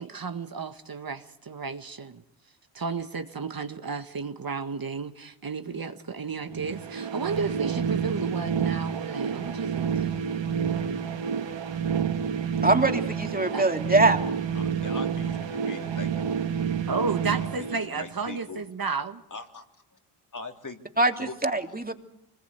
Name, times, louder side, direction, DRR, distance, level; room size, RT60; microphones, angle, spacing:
voice 1, 0.0-2.2 2.7-10.2 13.5-13.7 16.9-19.2, right 5 dB, 45° right, 8 dB, 1.7 m, -33 dB
sound 1, 6.4-18.4, right 7 dB, 60° right, 1.9 m, -29 dB
voice 2, 12.6-14.2 21.0-21.9, right 2 dB, 20° right, 5 dB, 3.0 m, -23 dB
voice 3, 14.5-16.2 17.4-18.6 19.3-19.6 20.3-20.8 21.2-21.3, left 3 dB, 35° left, 4 dB, 3.3 m, -41 dB
25.0 x 21.0 x 8.3 m, 0.76 s
supercardioid pair, 50°, 50 cm